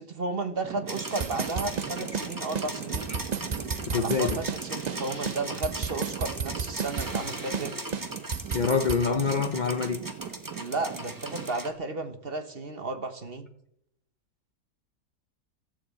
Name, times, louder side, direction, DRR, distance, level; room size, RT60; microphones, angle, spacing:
voice 1, 0.0-3.1 3.9-7.8 10.6-13.5, right 3 dB, 35° right, 1.3 m, -33 dB
Traffic noise roadway noise / Engine, 0.6-11.5, right 8 dB, 85° right, 1.8 m, -41 dB
sound 1, 0.9-11.7, right 1 dB, 15° right, 1.1 m, -39 dB
sound 2, 1.2-2.3 2.5-2.7 2.9-4.6 4.9-5.0 5.3-7.3 7.5-7.7 7.9-9.0, right 6 dB, 65° right, 0.4 m, -32 dB
voice 2, 3.9-4.4 8.5-10.1, left 5 dB, 60° left, 0.4 m, -26 dB
15.0 x 6.7 x 8.4 m
omnidirectional pair, 1.8 m